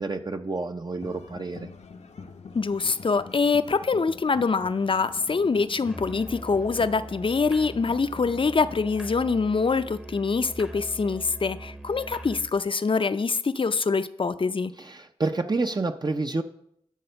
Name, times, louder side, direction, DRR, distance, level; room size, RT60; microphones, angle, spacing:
voice 1, 0.0-1.7 14.8-16.4, right 3 dB, 35° right, 0.6 m, -29 dB
sound 1, 1.0-8.9, left 5 dB, 80° left, 0.8 m, -46 dB
voice 2, 2.5-14.7, left 4 dB, 50° left, 0.5 m, -25 dB
Musical instrument, 5.9-12.6, right 1 dB, 5° right, 0.8 m, -42 dB
11.0 x 4.2 x 6.8 m
wide cardioid pair, 55°, 12 cm